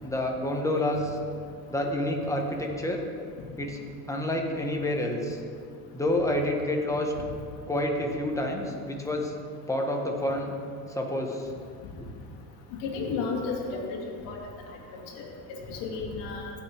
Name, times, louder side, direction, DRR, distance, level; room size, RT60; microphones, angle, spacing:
voice 1, 0.0-1.2 1.7-3.0 3.6-3.8 4.1-5.4 5.9-7.1 7.7-9.3 9.7-10.5 10.9-11.5, left 1 dB, 5° left, 1 dB, 1.5 m, -28 dB
voice 2, 12.8-14.0 14.3-14.4 15.1-15.3 15.7-16.5, left 4 dB, 70° left, -1 dB, 2.2 m, -32 dB
16.5 x 6.0 x 3.6 m, 2.2 s
supercardioid pair, 100°, 44 cm